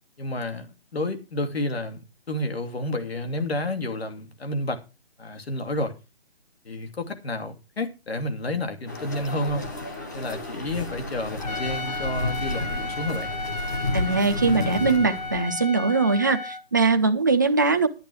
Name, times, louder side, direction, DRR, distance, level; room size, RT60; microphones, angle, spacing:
voice 1, 0.2-0.7 0.9-4.8 5.2-5.9 6.6-9.6 10.1-13.3, left 1 dB, 75° left, 2.6 m, -30 dB
sound 1, 8.9-15.6, left 2 dB, 15° left, 1.0 m, -31 dB
Trumpet, 11.4-16.6, left 2 dB, 40° left, 0.8 m, -34 dB
voice 2, 13.9-17.9, right 4 dB, 20° right, 0.6 m, -21 dB
11.5 x 10.5 x 4.7 m
hypercardioid pair, 175°, 31 cm